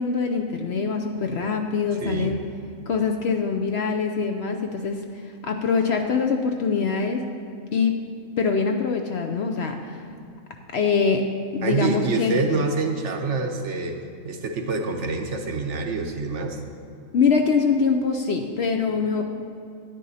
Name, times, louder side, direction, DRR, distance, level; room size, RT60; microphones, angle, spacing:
voice 1, 0.0-2.4 2.9-5.0 5.4-7.2 7.7-8.0 8.4-10.0 10.7-11.3 11.5-12.4 17.1-19.2, left 5 dB, 60° left, 4 dB, 0.8 m, -23 dB
voice 2, 2.0-2.4 11.6-14.0 14.2-16.6, right 4 dB, 60° right, 4 dB, 1.0 m, -26 dB
10.0 x 9.8 x 4.1 m, 2.5 s
omnidirectional pair, 1.5 m